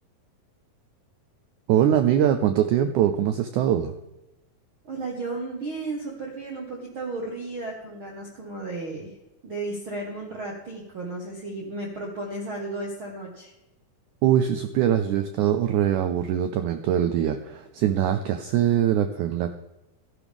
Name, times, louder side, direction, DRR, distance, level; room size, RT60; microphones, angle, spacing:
voice 1, 1.7-4.0 14.2-19.5, right 10 dB, 85° right, 9 dB, 1.7 m, -22 dB
voice 2, 4.8-9.2 9.4-13.5, right 2 dB, 50° right, -1 dB, 1.7 m, -34 dB
14.0 x 11.0 x 3.6 m, 0.98 s
omnidirectional pair, 4.2 m